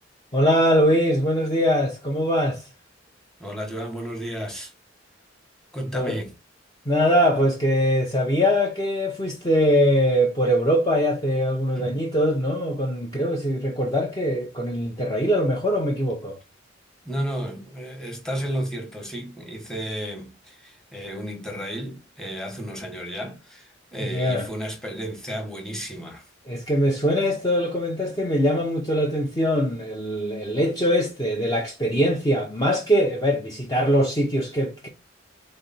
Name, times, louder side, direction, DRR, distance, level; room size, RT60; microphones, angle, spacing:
voice 1, 0.3-2.6 5.9-6.2 6.9-16.4 24.0-24.5 26.5-34.9, equal, 20° left, 0.7 m, -22 dB
voice 2, 3.4-4.7 5.7-6.3 11.8-11.9 17.0-26.3, equal, 5° left, 1.2 m, -32 dB
3.8 x 3.2 x 4.2 m
head